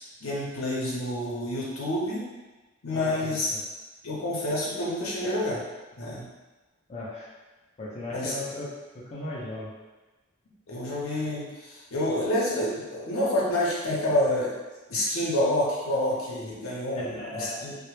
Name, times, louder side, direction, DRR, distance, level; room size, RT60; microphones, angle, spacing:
voice 1, 0.2-2.2 2.8-3.5 4.0-5.6 6.0-6.3 8.1-8.3 10.7-14.5 14.9-17.8, left 1 dB, 80° left, -5 dB, 0.7 m, -28 dB
voice 2, 2.9-3.6 6.9-7.3 7.8-8.7 8.9-9.7 16.9-17.6, left 1 dB, 30° left, -6 dB, 0.4 m, -36 dB
2.1 x 2.0 x 3.0 m, 1.2 s
head